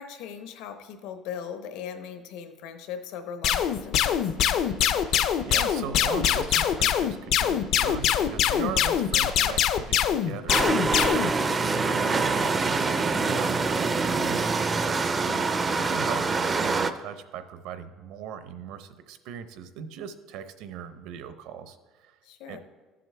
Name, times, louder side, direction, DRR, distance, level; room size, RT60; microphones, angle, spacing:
voice 1, 0.0-4.3 15.2-15.6 22.2-22.6, left 7 dB, 70° left, 8 dB, 0.9 m, -39 dB
sound 1, 3.4-11.3, left 9 dB, 50° left, 0.4 m, -23 dB
voice 2, 4.8-5.2 5.4-10.7 11.4-12.8 13.1-15.3 15.8-22.1 22.5-22.6, right 8 dB, 65° right, 10 dB, 0.7 m, -39 dB
sound 2, 10.5-16.9, right 4 dB, 15° right, 0.4 m, -25 dB
13.5 x 7.6 x 3.3 m, 1.3 s
cardioid pair, 175°, 0 cm